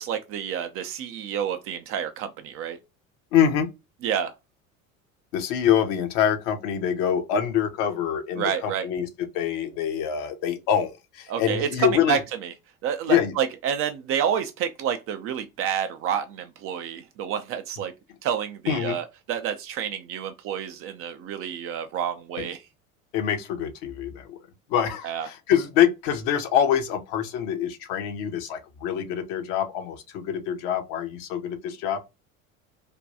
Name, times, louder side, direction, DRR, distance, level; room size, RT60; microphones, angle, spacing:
voice 1, 0.0-2.8 4.0-4.3 8.4-8.9 11.3-12.5 12.8-17.9 18.2-22.6 25.0-25.3, right 8 dB, 35° right, 0.4 m, -29 dB
voice 2, 3.3-3.7 5.3-9.1 9.3-12.2 13.1-13.3 18.7-19.0 22.4-22.5 23.1-24.4 24.7-32.0, left 9 dB, 50° left, 0.8 m, -25 dB
3.4 x 2.2 x 2.7 m
figure-of-eight pair, 70°, 41 cm